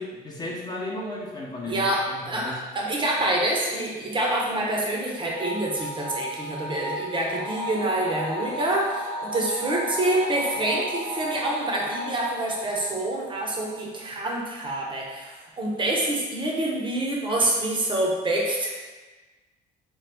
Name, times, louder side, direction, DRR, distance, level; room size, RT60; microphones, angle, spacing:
voice 1, 0.0-2.6, left 2 dB, 25° left, -3 dB, 0.6 m, -34 dB
voice 2, 1.7-18.7, right 1 dB, 30° right, -2 dB, 0.6 m, -26 dB
sound 1, 5.3-13.9, equal, 85° right, 1.1 m, -34 dB
3.0 x 2.2 x 3.3 m, 1.2 s
cardioid pair, 110°, 17 cm